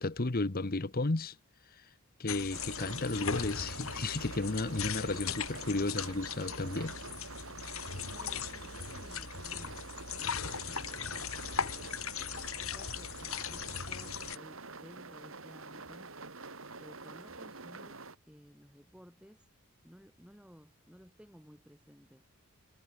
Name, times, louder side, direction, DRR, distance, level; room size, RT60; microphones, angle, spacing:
voice 1, 0.0-1.4 2.2-7.0, left 2 dB, 40° left, 1.0 m, -33 dB
sound 1, 2.3-14.4, left 7 dB, 70° left, 1.9 m, -39 dB
sound 2, 2.5-18.2, right 3 dB, 65° right, 3.4 m, -47 dB
voice 2, 8.1-9.9 10.2-12.1 12.6-16.1 16.8-19.5 19.8-22.3, equal, 5° right, 5.7 m, -56 dB
head